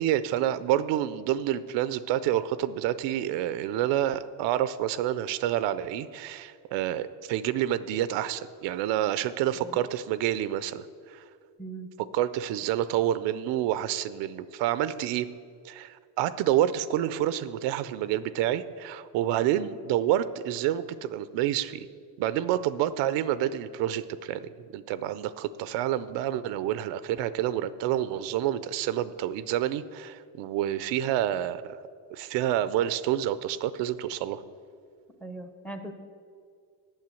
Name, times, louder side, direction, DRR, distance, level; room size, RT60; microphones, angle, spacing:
voice 1, 0.0-11.2 12.1-15.3 15.6-21.9 22.2-31.8 32.1-34.4, right 12 dB, 85° right, 15 dB, 0.6 m, -28 dB
voice 2, 35.2-35.9, right 2 dB, 5° left, 8 dB, 0.6 m, -39 dB
8.9 x 7.2 x 7.6 m, 2.2 s
cardioid pair, 135°, 42 cm